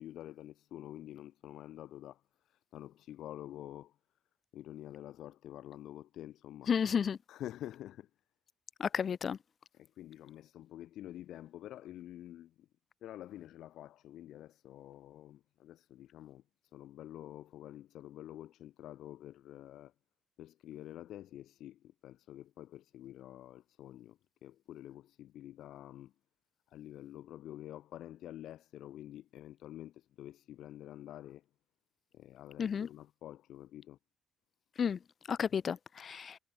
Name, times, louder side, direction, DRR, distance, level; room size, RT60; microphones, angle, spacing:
voice 1, 0.0-4.0 4.5-6.7 7.3-8.1 9.7-12.7 13.0-16.4 16.7-19.9 20.4-26.1 26.7-31.4 32.1-34.0, left 13 dB, 80° left, 4.5 m, -48 dB
voice 2, 6.7-7.2 8.8-9.4 32.6-32.9 34.8-35.0 35.3-36.4, left 7 dB, 50° left, 0.5 m, -32 dB
cardioid pair, 90°, 0 cm